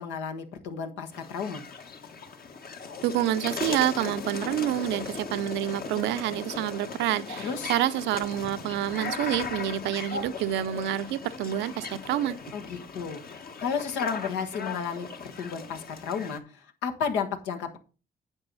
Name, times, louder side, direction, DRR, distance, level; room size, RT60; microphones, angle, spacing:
voice 1, 0.0-1.6 7.4-7.7 12.5-13.2 13.6-17.8, left 6 dB, 85° left, 1.4 m, -32 dB
sound 1, 1.1-16.4, left 5 dB, 55° left, 1.7 m, -38 dB
voice 2, 3.0-12.4, right 12 dB, 80° right, 0.6 m, -28 dB
9.8 x 7.3 x 4.0 m
hypercardioid pair, 40°, 18 cm